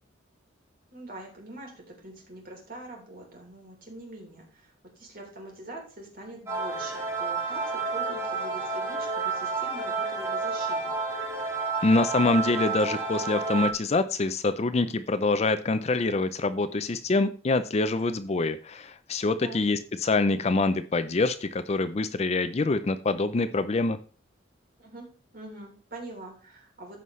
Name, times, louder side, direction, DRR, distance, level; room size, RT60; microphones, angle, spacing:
voice 1, 0.9-10.9 19.4-19.6 24.8-25.1 25.3-27.0, right 1 dB, 45° right, 0 dB, 3.4 m, -44 dB
sound 1, 6.5-13.7, right 4 dB, 15° right, 1.8 m, -30 dB
voice 2, 11.8-24.0, left 3 dB, 30° left, 12 dB, 0.4 m, -25 dB
15.0 x 5.5 x 3.2 m, 0.39 s
head